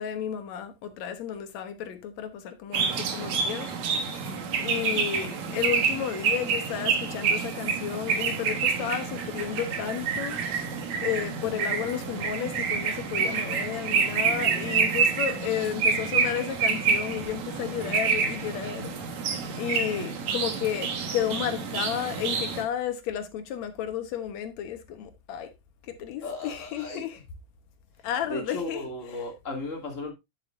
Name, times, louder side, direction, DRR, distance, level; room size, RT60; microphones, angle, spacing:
voice 1, 0.0-3.7 4.6-10.4 11.0-18.9 19.6-25.5 25.9-27.2 28.0-28.9 29.1-29.2, left 9 dB, 70° left, 2.3 m, -32 dB
sound 1, 2.7-22.6, right 6 dB, 75° right, 2.7 m, -28 dB
voice 2, 14.1-14.7 26.2-27.0 28.3-30.1, left 2 dB, 25° left, 2.4 m, -36 dB
9.5 x 7.6 x 2.5 m
omnidirectional pair, 3.3 m